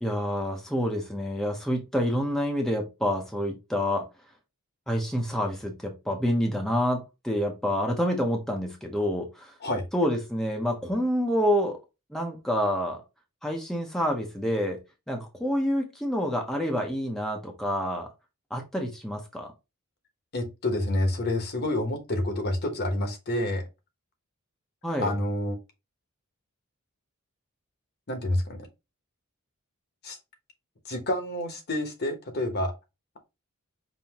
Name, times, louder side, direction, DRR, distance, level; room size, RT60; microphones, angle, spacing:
voice 1, 0.0-4.1 4.9-9.5 9.9-11.8 12.1-13.0 13.4-14.8 15.1-18.1 18.5-19.5 24.8-25.1, equal, ahead, 0.7 m, -28 dB
voice 2, 20.3-23.7 25.0-25.6 28.1-28.6 30.0-30.2 30.8-32.7, left 1 dB, 45° left, 1.0 m, -28 dB
5.4 x 2.7 x 2.9 m
head